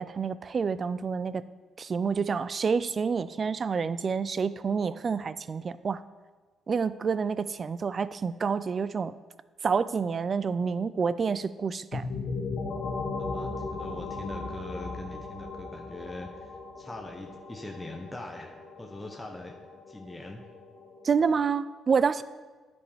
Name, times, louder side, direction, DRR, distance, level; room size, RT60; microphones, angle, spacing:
voice 1, 0.0-1.4 1.8-6.0 6.7-9.1 9.6-12.1 21.0-22.2, right 5 dB, 40° right, 16 dB, 0.4 m, -28 dB
sound 1, 11.9-21.5, left 3 dB, 60° left, 1.2 m, -37 dB
voice 2, 13.1-19.5 19.9-20.5, left 2 dB, 15° left, 1 dB, 0.8 m, -42 dB
10.0 x 5.2 x 4.9 m, 1.4 s
cardioid pair, 90°, 0 cm